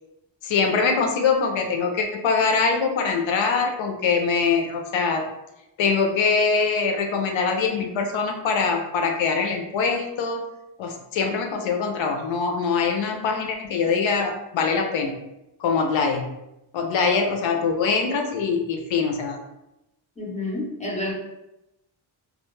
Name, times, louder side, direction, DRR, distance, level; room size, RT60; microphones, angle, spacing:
voice 1, 0.4-5.2 5.8-10.4 10.8-15.2 15.6-16.3 16.7-19.4, left 5 dB, 75° left, 4 dB, 0.6 m, -23 dB
voice 2, 20.2-21.1, left 2 dB, 15° left, -3 dB, 0.6 m, -29 dB
2.2 x 2.0 x 3.0 m, 0.89 s
cardioid pair, 100°, 46 cm